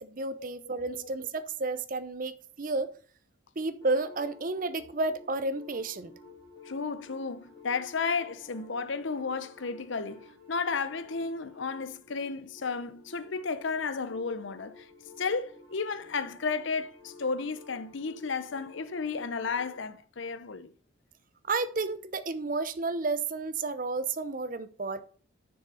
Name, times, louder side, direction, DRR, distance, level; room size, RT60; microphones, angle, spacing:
voice 1, 0.0-2.9 3.6-6.1 21.5-25.0, right 3 dB, 40° right, 0.7 m, -31 dB
sound 1, 3.8-19.8, left 3 dB, 20° left, 3.6 m, -52 dB
voice 2, 6.6-14.9 15.2-20.7, left 4 dB, 70° left, 0.7 m, -33 dB
6.6 x 6.5 x 5.5 m
head